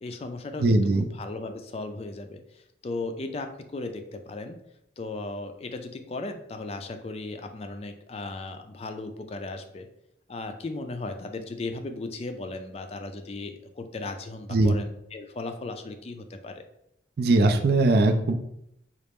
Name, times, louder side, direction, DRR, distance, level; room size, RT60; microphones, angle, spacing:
voice 1, 0.0-4.6 5.0-9.9 10.3-16.6, left 2 dB, 35° left, 7 dB, 0.3 m, -36 dB
voice 2, 0.6-1.1 14.5-14.8 17.2-18.3, right 2 dB, 55° right, 6 dB, 0.3 m, -20 dB
4.2 x 2.4 x 3.4 m, 0.77 s
head